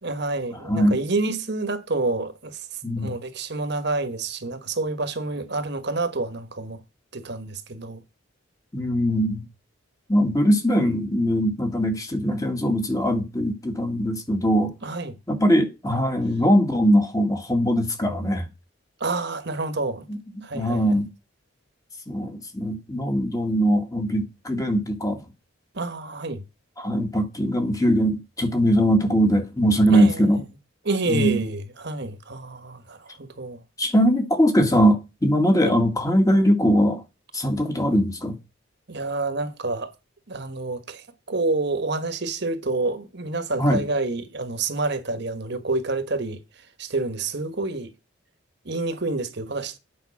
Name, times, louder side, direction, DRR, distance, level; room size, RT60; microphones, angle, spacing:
voice 1, 0.0-6.8 7.1-8.0 14.8-15.1 19.0-20.0 20.4-21.0 25.7-26.4 29.9-30.4 30.8-33.6 35.6-35.7 38.9-39.9 40.3-47.9 48.6-49.8, right 3 dB, 55° right, 1.4 m, -28 dB
voice 2, 0.6-1.0 2.8-3.2 8.7-9.5 10.1-14.7 15.3-18.5 20.1-20.2 20.5-21.1 22.1-25.2 26.8-30.4 31.1-31.4 33.8-37.0 37.3-38.4 43.6-43.8, equal, 15° left, 1.8 m, -21 dB
8.8 x 5.3 x 7.0 m
head